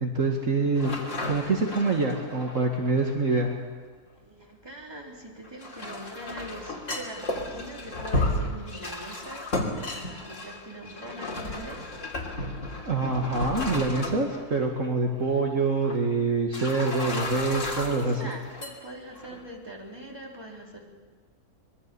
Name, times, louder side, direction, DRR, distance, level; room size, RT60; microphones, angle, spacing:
voice 1, 0.0-1.0 1.2-3.5 12.9-18.2, right 3 dB, 55° right, 1 dB, 2.4 m, -25 dB
sound 1, 0.8-3.4 5.4-14.6 14.8-14.9 15.8-16.0 16.5-18.7 19.1-19.4, left 1 dB, 50° left, 3.4 m, -33 dB
voice 2, 4.1-12.9 17.8-20.9, right 1 dB, 15° right, -1 dB, 3.9 m, -43 dB
25.0 x 22.5 x 7.0 m, 1.5 s
omnidirectional pair, 1.6 m